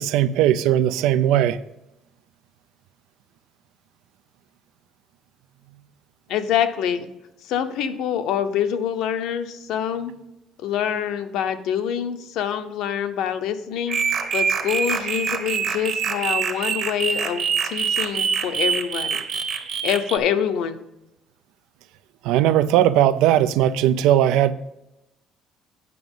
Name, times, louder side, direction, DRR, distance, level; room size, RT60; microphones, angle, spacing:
voice 1, 0.0-1.6 22.2-24.5, right 11 dB, 85° right, 14 dB, 0.5 m, -18 dB
voice 2, 6.3-7.1 7.4-10.1 10.6-19.2 19.8-20.8, left 9 dB, 65° left, 10 dB, 0.8 m, -25 dB
sound 1, 13.9-20.2, right 6 dB, 30° right, 1.0 m, -25 dB
9.4 x 6.2 x 5.4 m, 0.91 s
cardioid pair, 180°, 0 cm